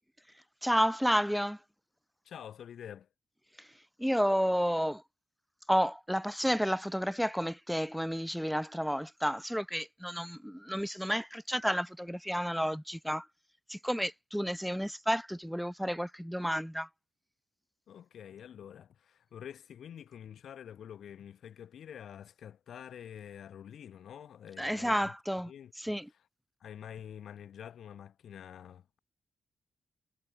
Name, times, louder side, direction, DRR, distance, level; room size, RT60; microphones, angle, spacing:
voice 1, 0.6-1.6 3.6-3.7 4.0-5.0 5.7-13.3 13.7-16.9 24.6-25.5 25.8-26.1, equal, ahead, 0.4 m, -31 dB
voice 2, 2.2-3.1 17.9-25.1 25.5-26.0 26.6-29.0, left 9 dB, 65° left, 2.5 m, -47 dB
wide cardioid pair, 140°, 0 cm